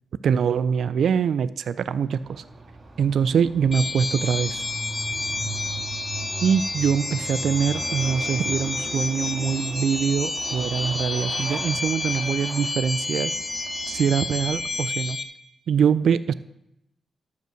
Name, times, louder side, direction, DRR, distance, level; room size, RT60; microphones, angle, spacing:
voice 1, 0.2-2.4 3.0-4.7 6.4-13.3 13.9-15.2 15.7-16.3, right 7 dB, 80° right, 16 dB, 0.3 m, -23 dB
Motorcycle, 2.1-14.8, right 3 dB, 50° right, 1.9 m, -39 dB
sound 1, 3.7-15.2, left 2 dB, 20° left, 1.3 m, -30 dB
12.0 x 5.7 x 6.3 m, 0.84 s
cardioid pair, 70°, 0 cm